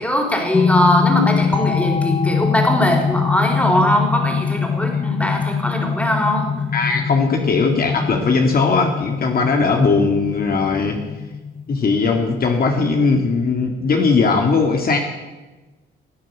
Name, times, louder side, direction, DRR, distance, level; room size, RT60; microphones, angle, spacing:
voice 1, 0.0-6.5, equal, 5° left, 2 dB, 4.1 m, -20 dB
sound 1, 0.5-13.2, left 6 dB, 25° left, 0.8 m, -23 dB
voice 2, 6.7-11.0 11.7-15.0, left 4 dB, 50° left, 2 dB, 2.1 m, -18 dB
17.5 x 9.0 x 8.3 m, 1.2 s
cardioid pair, 90°, 20 cm